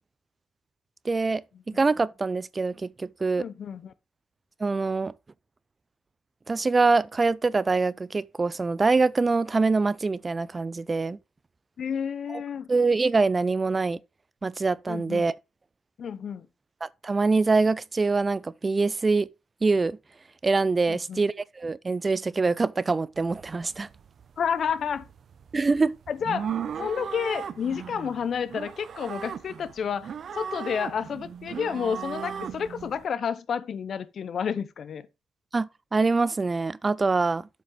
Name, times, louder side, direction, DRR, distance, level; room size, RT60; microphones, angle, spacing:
voice 1, 1.0-3.4 4.6-5.1 6.5-11.2 12.3-12.4 12.7-14.0 14.4-15.4 16.8-19.3 19.6-20.0 20.4-23.9 25.5-26.0 35.5-37.5, right 3 dB, 25° right, 0.3 m, -24 dB
voice 2, 3.4-3.9 11.8-12.7 14.9-15.3 16.0-16.5 20.9-21.2 24.4-25.0 26.1-26.5 26.8-35.1, left 7 dB, 55° left, 0.7 m, -30 dB
sound 1, 23.2-33.0, right 8 dB, 55° right, 0.7 m, -37 dB
7.7 x 5.4 x 4.9 m
cardioid pair, 90°, 0 cm